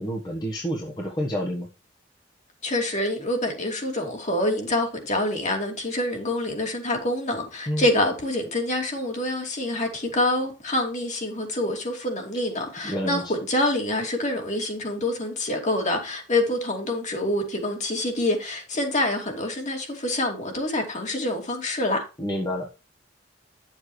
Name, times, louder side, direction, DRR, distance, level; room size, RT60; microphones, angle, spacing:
voice 1, 0.0-1.7 7.7-7.9 12.8-13.3 22.2-22.7, equal, 20° left, 1.4 m, -29 dB
voice 2, 2.6-22.0, left 1 dB, 40° left, 2.7 m, -26 dB
10.5 x 7.4 x 3.2 m
head